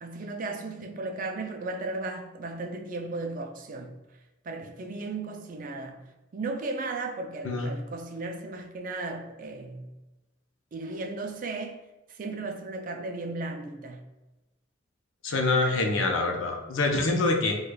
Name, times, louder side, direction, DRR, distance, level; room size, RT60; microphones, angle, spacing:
voice 1, 0.0-4.0 4.4-6.0 6.3-9.9 10.7-11.8 12.1-14.1, right 3 dB, 40° right, 0.3 m, -35 dB
voice 2, 15.2-17.6, left 3 dB, 80° left, 0.6 m, -25 dB
4.8 x 2.3 x 2.2 m
head